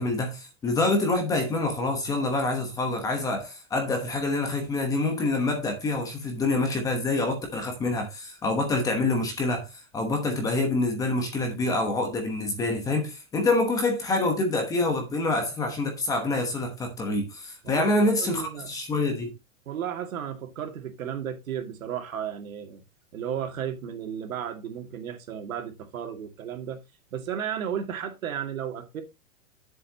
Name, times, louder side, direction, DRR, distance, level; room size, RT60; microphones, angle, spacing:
voice 1, 0.0-19.3, left 2 dB, 10° left, 1.1 m, -26 dB
voice 2, 17.6-18.7 19.7-22.8 23.1-26.8 27.1-29.0, right 9 dB, 80° right, 2.6 m, -34 dB
10.0 x 7.6 x 2.9 m
supercardioid pair, 175°, 41 cm